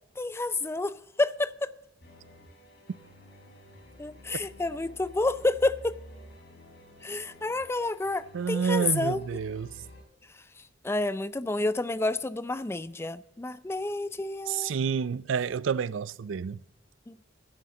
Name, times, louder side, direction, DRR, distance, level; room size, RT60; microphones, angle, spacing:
voice 1, 0.2-1.7 4.0-6.0 7.0-9.2 10.8-14.7 17.1-17.2, left 2 dB, 15° left, 0.4 m, -29 dB
sound 1, 2.0-10.0, left 1 dB, 60° left, 4.5 m, -51 dB
voice 2, 8.3-9.8 14.5-16.6, right 6 dB, 85° right, 0.4 m, -29 dB
16.0 x 12.0 x 3.7 m
head